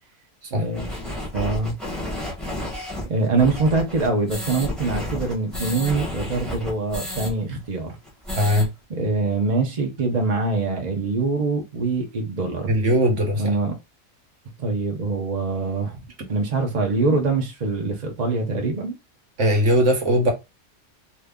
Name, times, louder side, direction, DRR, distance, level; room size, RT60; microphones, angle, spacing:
voice 1, 0.5-1.0 1.3-1.7 3.1-8.0 8.9-12.7 13.4-13.7 14.6-16.0 16.3-19.0, right 3 dB, 35° right, 0.7 m, -24 dB
sound 1, 0.7-7.3 7.6-7.7 8.0-8.7, left 1 dB, ahead, 0.9 m, -31 dB
voice 2, 8.3-8.7 12.7-13.5 19.4-20.3, equal, 60° right, 1.2 m, -19 dB
2.7 x 2.6 x 3.5 m
omnidirectional pair, 1.5 m